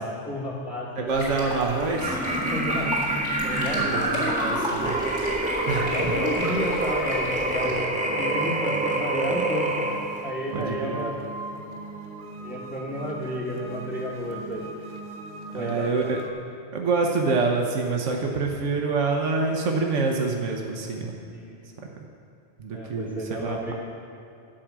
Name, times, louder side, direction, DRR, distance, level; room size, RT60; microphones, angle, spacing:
voice 1, 0.0-1.5 2.4-2.9 3.4-4.0 5.9-9.7 10.2-11.2 12.4-14.9 15.5-15.9 21.3-21.9 22.7-23.7, equal, 10° left, -4 dB, 1.1 m, -32 dB
voice 2, 1.0-2.2 3.8-5.0 5.6-6.1 10.5-11.1 15.5-16.2 16.7-21.2 22.0-22.1 22.6-23.7, right 4 dB, 80° right, 1 dB, 1.3 m, -26 dB
sound 1, 1.1-7.7, left 1 dB, 65° left, 2.4 m, -34 dB
sound 2, 1.9-10.3, right 1 dB, 10° right, 0.3 m, -26 dB
sound 3, 8.0-16.3, right 3 dB, 50° right, 0.7 m, -39 dB
11.5 x 4.9 x 7.3 m, 2.6 s
omnidirectional pair, 1.2 m